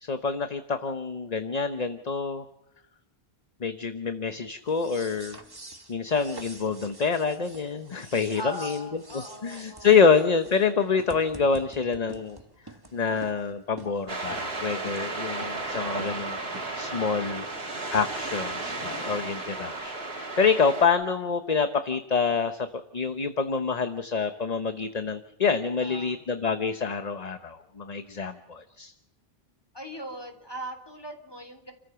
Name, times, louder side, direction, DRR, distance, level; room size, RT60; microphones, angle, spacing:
voice 1, 0.0-2.4 3.6-5.4 5.9-8.9 9.1-12.4 12.9-17.5 17.9-22.7 22.9-28.9, left 5 dB, 40° left, 8 dB, 1.0 m, -26 dB
sound 1, 4.6-19.9, right 2 dB, 20° right, 1.6 m, -48 dB
voice 2, 8.3-9.9 25.8-26.2 29.7-31.7, equal, 25° left, 6 dB, 3.5 m, -40 dB
sound 2, 14.1-20.9, right 2 dB, 75° right, 2.8 m, -34 dB
29.5 x 14.5 x 6.9 m, 0.85 s
omnidirectional pair, 1.1 m